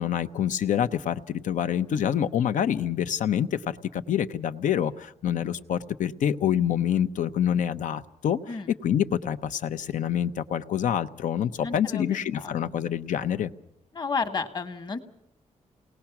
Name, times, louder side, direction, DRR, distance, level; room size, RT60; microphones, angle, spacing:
voice 1, 0.0-8.4 8.7-13.5, left 9 dB, 85° left, 11 dB, 0.8 m, -26 dB
voice 2, 11.6-12.7 13.9-15.0, left 4 dB, 35° left, 8 dB, 1.3 m, -32 dB
29.0 x 19.0 x 5.9 m, 0.78 s
wide cardioid pair, 160°, 13 cm